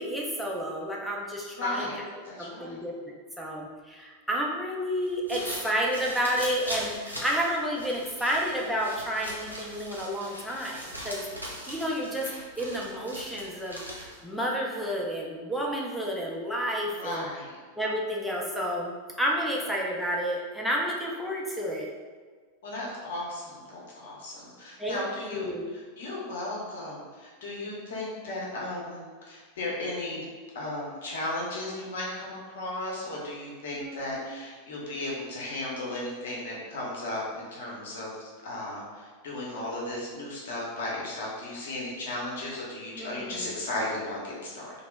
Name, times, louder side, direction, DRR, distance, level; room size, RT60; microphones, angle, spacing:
voice 1, 0.0-1.9 2.4-11.2 11.7-12.3 12.6-17.2 17.8-21.9 24.8-25.7 33.7-34.2 43.0-43.5, equal, ahead, -4 dB, 0.5 m, -31 dB
voice 2, 1.5-2.0 2.2-2.8 16.9-17.5 22.6-25.5 25.7-30.2 30.5-44.7, left 1 dB, 60° left, -4 dB, 0.8 m, -35 dB
sound 1, 5.0-14.3, equal, 90° right, 0.6 m, -40 dB
2.8 x 2.0 x 3.4 m, 1.5 s
figure-of-eight pair, 90°, 0 cm